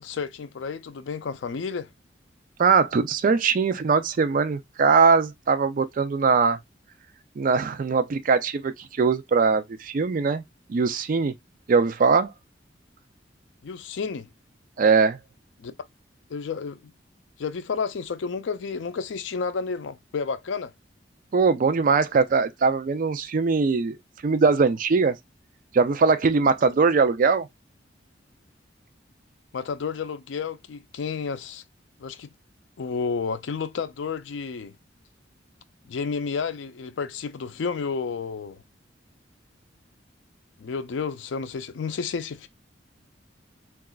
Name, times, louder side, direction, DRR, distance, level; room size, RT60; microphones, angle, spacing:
voice 1, 0.0-1.9 13.6-14.3 15.6-15.7 16.3-16.8 17.4-20.7 29.5-31.6 32.0-32.3 32.8-34.7 35.9-38.6 40.6-42.5, left 5 dB, 75° left, 0.4 m, -31 dB
voice 2, 2.6-6.6 7.4-8.7 9.0-10.4 10.7-11.3 11.7-12.3 14.8-15.2 21.3-24.0 24.2-25.1 25.7-27.5, right 5 dB, 45° right, 0.4 m, -21 dB
3.8 x 2.3 x 2.3 m
head